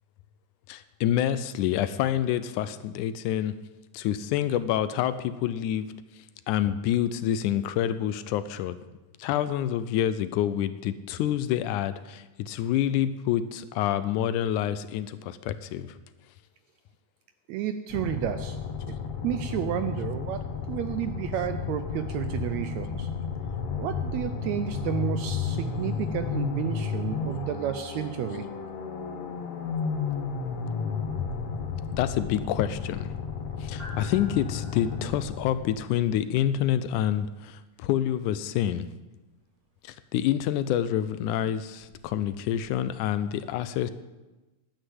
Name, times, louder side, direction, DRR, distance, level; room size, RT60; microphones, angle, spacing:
voice 1, 0.7-3.5 3.9-5.9 6.5-8.8 9.2-15.9 32.0-33.1 33.6-38.9 39.8-43.9, left 11 dB, 80° left, 13 dB, 2.0 m, -27 dB
voice 2, 17.5-18.6 18.9-19.0 19.2-23.1 23.8-28.5, right 11 dB, 80° right, 9 dB, 1.6 m, -31 dB
sound 1, 17.9-36.0, left 5 dB, 60° left, 2.3 m, -33 dB
sound 2, 27.8-42.9, equal, 35° right, 4.3 m, -55 dB
11.5 x 8.9 x 7.8 m, 1.1 s
omnidirectional pair, 3.7 m